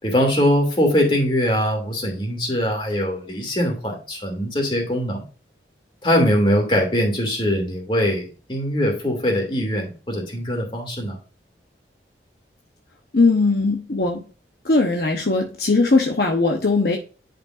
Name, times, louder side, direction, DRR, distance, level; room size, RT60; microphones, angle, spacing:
voice 1, 0.0-5.2 6.0-11.2, equal, 30° left, 1 dB, 2.6 m, -22 dB
voice 2, 13.1-14.2 14.6-17.0, left 3 dB, 60° left, 1 dB, 0.9 m, -19 dB
10.5 x 5.2 x 2.5 m, 0.35 s
head